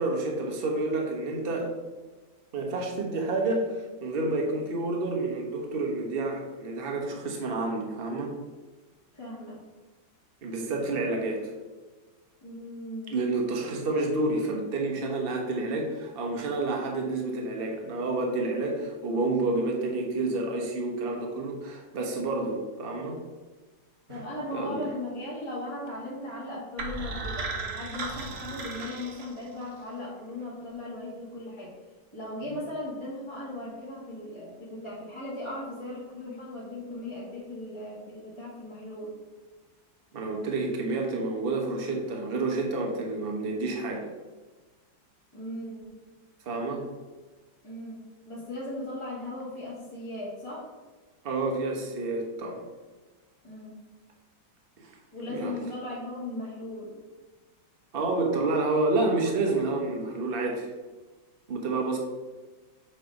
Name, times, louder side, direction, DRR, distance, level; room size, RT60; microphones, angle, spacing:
voice 1, 0.0-1.7 2.5-8.3 10.4-11.5 13.1-23.2 24.1-24.2 24.5-24.8 40.1-44.1 46.4-46.9 51.2-52.6 54.8-54.9 55.3-55.6 57.9-60.7 61.5-62.0, right 2 dB, 35° right, 1 dB, 1.0 m, -29 dB
voice 2, 9.1-9.6 12.4-13.1 22.4-22.5 24.1-31.7 32.1-39.1 45.3-45.8 47.6-50.7 53.4-53.7 55.1-56.9, left 1 dB, 15° left, -8 dB, 1.3 m, -37 dB
sound 1, 26.8-29.8, right 3 dB, 55° right, 1.2 m, -36 dB
7.5 x 3.4 x 5.2 m, 1.3 s
omnidirectional pair, 2.1 m